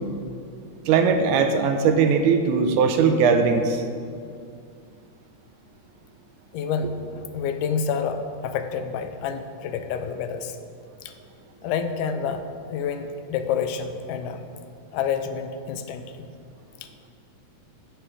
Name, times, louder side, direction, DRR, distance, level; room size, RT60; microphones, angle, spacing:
voice 1, 0.9-3.8, right 5 dB, 80° right, 7 dB, 2.1 m, -19 dB
voice 2, 6.5-10.6 11.0-11.1 11.6-14.5 14.9-16.3, left 6 dB, 85° left, 8 dB, 2.1 m, -28 dB
10.5 x 8.0 x 4.8 m, 2.3 s
omnidirectional pair, 3.7 m